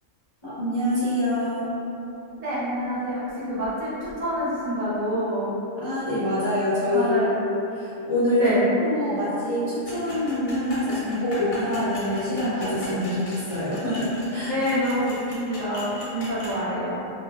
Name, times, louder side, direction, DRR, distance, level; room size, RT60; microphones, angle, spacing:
voice 1, 0.4-1.7 5.8-7.2 7.7-14.5, left 1 dB, 40° left, -14 dB, 0.4 m, -25 dB
voice 2, 2.4-5.5 6.9-7.3 8.3-8.6 14.5-17.0, equal, 70° right, -10 dB, 1.2 m, -27 dB
sound 1, 9.8-16.6, left 1 dB, 85° left, 1.1 m, -38 dB
3.1 x 2.1 x 2.2 m, 2.8 s
omnidirectional pair, 1.4 m